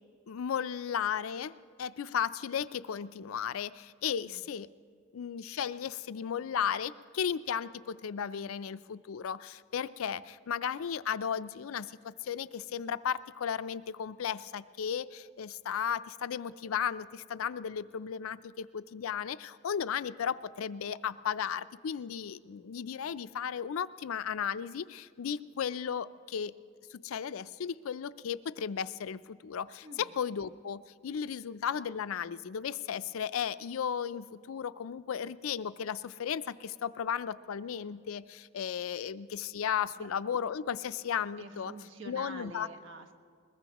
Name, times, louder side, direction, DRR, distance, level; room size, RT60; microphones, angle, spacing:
voice 1, 0.3-4.7 5.1-26.5 26.9-41.7 42.1-42.7, left 8 dB, 90° left, 15 dB, 0.4 m, -35 dB
voice 2, 29.8-30.1 40.0-40.1 41.4-43.1, right 2 dB, 65° right, 4 dB, 1.4 m, -47 dB
22.0 x 20.5 x 3.0 m, 2.1 s
head